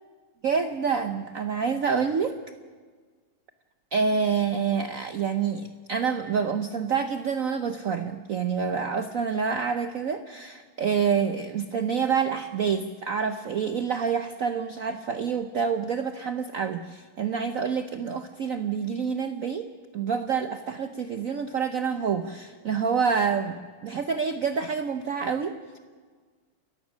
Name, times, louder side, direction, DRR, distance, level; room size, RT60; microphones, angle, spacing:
voice 1, 0.4-2.4 3.9-19.7 19.9-25.8, right 6 dB, 70° right, 9 dB, 0.8 m, -27 dB
29.0 x 14.5 x 6.3 m, 1.5 s
omnidirectional pair, 2.4 m